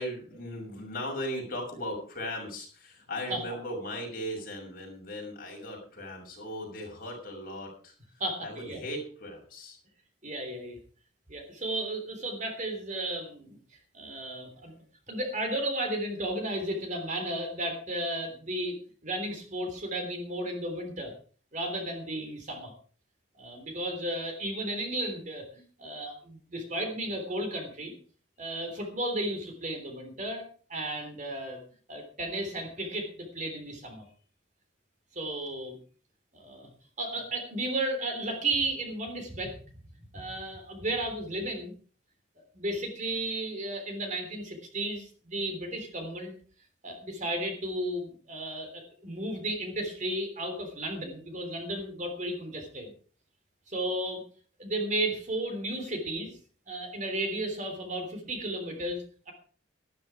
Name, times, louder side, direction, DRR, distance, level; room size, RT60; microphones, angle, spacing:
voice 1, 0.0-7.9 8.4-9.8, equal, 45° left, -1 dB, 6.4 m, -37 dB
voice 2, 8.2-8.8 10.2-10.8 11.3-13.6 13.9-14.7 15.1-21.1 21.5-22.7 23.4-27.9 28.4-31.6 31.9-34.0 35.1-35.8 36.3-36.7 37.0-39.8 40.1-41.7 42.5-46.3 46.8-52.9 53.7-54.2 54.6-56.4 56.7-59.3, right 1 dB, 40° right, 5 dB, 3.4 m, -34 dB
13.0 x 12.5 x 4.9 m, 0.42 s
head